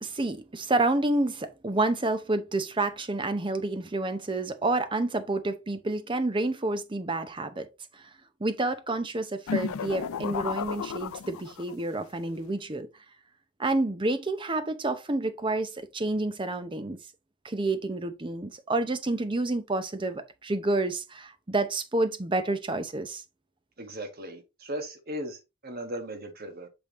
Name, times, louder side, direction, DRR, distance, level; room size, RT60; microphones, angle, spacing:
voice 1, 0.0-7.7 7.9-8.1 8.4-12.9 13.6-17.0 17.4-23.2, right 2 dB, 25° right, 0.6 m, -29 dB
sound 1, 9.5-11.9, left 6 dB, 85° left, 0.4 m, -33 dB
voice 2, 23.8-26.7, right 1 dB, 45° right, 1.4 m, -37 dB
6.0 x 5.2 x 3.0 m
head